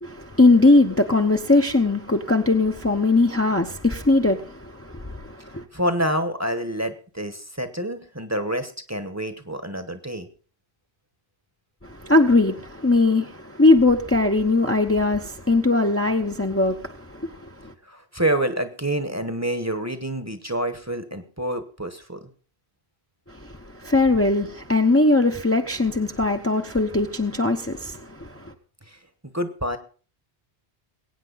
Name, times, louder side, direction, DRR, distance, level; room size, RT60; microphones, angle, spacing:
voice 1, 0.0-5.6 11.8-17.7 23.3-28.5, left 2 dB, 15° left, 0.8 m, -20 dB
voice 2, 5.7-10.3 17.8-22.3 28.9-29.8, right 1 dB, 15° right, 1.1 m, -27 dB
22.5 x 8.9 x 4.0 m
omnidirectional pair, 1.1 m